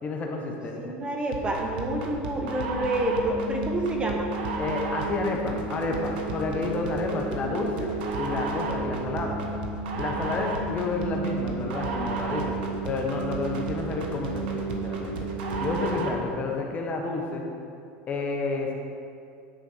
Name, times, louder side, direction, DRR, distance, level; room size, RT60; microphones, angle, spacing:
voice 1, 0.0-1.0 4.6-9.4 10.0-12.6 12.8-15.3 15.6-17.4 18.1-18.7, left 3 dB, 30° left, 1 dB, 1.2 m, -30 dB
voice 2, 0.8-4.3, right 1 dB, 20° right, 1 dB, 1.1 m, -28 dB
sound 1, 1.3-16.3, right 3 dB, 80° right, 1.2 m, -32 dB
10.0 x 4.4 x 6.3 m, 2.4 s
supercardioid pair, 125°, 5 cm